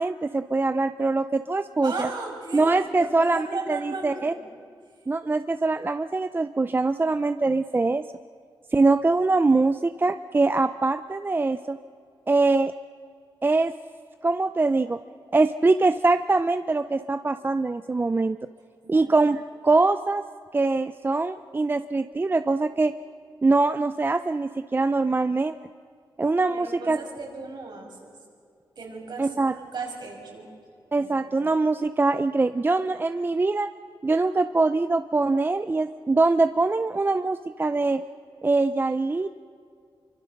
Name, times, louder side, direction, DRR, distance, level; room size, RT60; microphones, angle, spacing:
voice 1, 0.0-2.1 2.5-4.3 5.1-8.0 8.7-11.8 12.3-12.7 13.4-13.7 14.2-15.0 15.3-18.4 18.9-20.2 20.5-22.9 23.4-25.6 26.2-27.0 29.2-29.5 30.9-33.7 34.0-38.0 38.4-39.3, right 3 dB, 25° right, 11 dB, 0.5 m, -23 dB
voice 2, 1.8-4.5 18.8-19.3 26.5-28.2 28.8-30.5 31.0-31.1, right 3 dB, 65° right, 0 dB, 5.9 m, -36 dB
25.5 x 24.0 x 6.6 m, 2.2 s
wide cardioid pair, 95°, 8 cm